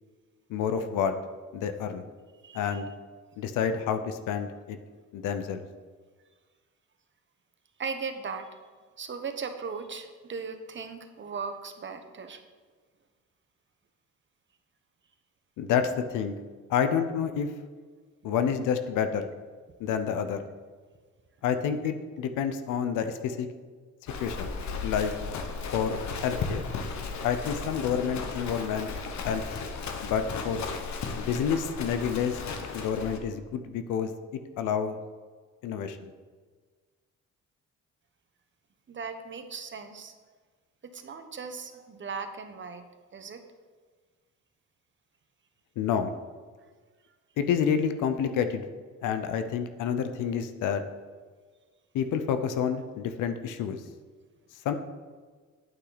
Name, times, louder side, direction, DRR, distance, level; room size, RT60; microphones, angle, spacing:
voice 1, 0.5-1.1 1.5-2.0 2.5-2.9 3.4-4.8 5.1-5.6 15.6-16.4 16.7-17.5 18.2-19.3 19.8-20.4 21.4-23.5 24.2-24.5 24.8-25.1 25.7-26.6 27.2-28.9 29.2-29.4 30.0-30.6 31.2-32.4 32.7-34.1 34.6-35.0 35.6-36.1 45.8-46.1 47.4-48.7 49.0-50.8 51.9-53.8 54.6-54.7, left 7 dB, 90° left, 9 dB, 0.7 m, -28 dB
voice 2, 2.4-2.8 7.8-8.5 9.0-12.4 38.9-40.1 40.8-42.8 43.1-43.4, right 5 dB, 40° right, 8 dB, 1.1 m, -38 dB
Livestock farm animals working animals, 24.1-33.2, left 4 dB, 65° left, 1.2 m, -35 dB
9.0 x 8.6 x 4.0 m, 1.5 s
cardioid pair, 90°, 30 cm